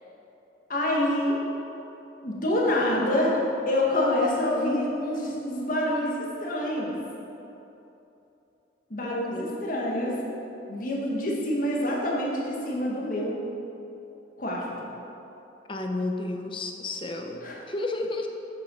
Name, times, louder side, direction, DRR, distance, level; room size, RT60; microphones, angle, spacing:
voice 1, 0.7-1.4 2.2-3.4 3.7-6.9 8.9-10.2 10.7-13.4 14.4-14.7 17.4-17.6, left 1 dB, 45° left, -3 dB, 1.7 m, -26 dB
voice 2, 9.0-9.5 15.7-18.3, left 2 dB, 25° left, 4 dB, 0.7 m, -32 dB
8.3 x 6.6 x 6.5 m, 2.9 s
head